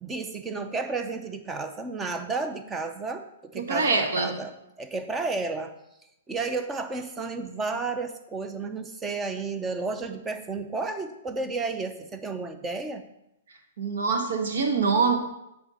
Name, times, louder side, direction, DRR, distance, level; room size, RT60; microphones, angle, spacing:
voice 1, 0.0-3.2 3.5-5.7 6.3-13.1, right 3 dB, 10° right, 8 dB, 0.6 m, -32 dB
voice 2, 3.5-4.3 13.8-15.2, right 4 dB, 75° right, 3 dB, 1.4 m, -24 dB
7.9 x 3.6 x 6.3 m, 0.87 s
hypercardioid pair, 155°, 0 cm